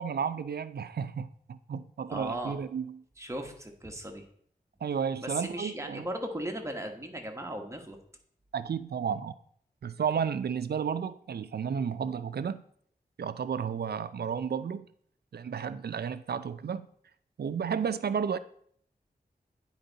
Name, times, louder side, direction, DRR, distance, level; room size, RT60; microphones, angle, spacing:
voice 1, 0.0-3.0 4.8-6.1 8.5-9.3 9.8-12.6 13.2-14.9 15.3-16.9 17.4-18.4, right 7 dB, 75° right, 0.5 m, -32 dB
voice 2, 2.1-2.6 3.2-4.3 5.2-8.0, right 1 dB, 15° right, 1.2 m, -37 dB
9.3 x 4.5 x 4.0 m
wide cardioid pair, 65°, 17 cm